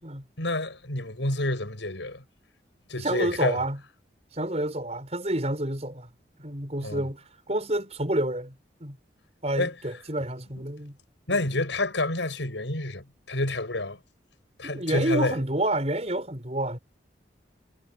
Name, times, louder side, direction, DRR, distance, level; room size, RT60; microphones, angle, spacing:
voice 1, 0.4-2.2 2.9-3.6 6.8-7.0 9.6-9.7 11.3-14.0 14.6-15.4, left 2 dB, 90° left, 7.1 m, -28 dB
voice 2, 3.0-3.8 4.3-6.1 6.4-7.2 7.5-8.5 8.8-9.0 9.4-11.0 11.3-11.4 14.6-16.8, right 1 dB, 35° right, 6.6 m, -29 dB
head